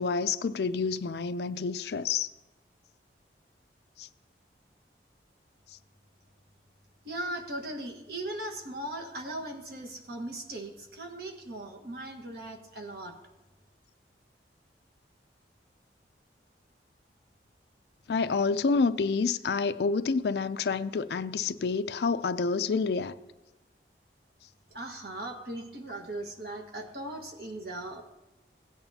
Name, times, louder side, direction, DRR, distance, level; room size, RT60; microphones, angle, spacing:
voice 1, 0.0-2.3 4.0-4.1 18.1-23.1, left 4 dB, 65° left, 0.4 m, -28 dB
voice 2, 7.0-13.1 24.7-28.0, right 1 dB, 60° right, 1.4 m, -38 dB
16.0 x 8.8 x 2.8 m
head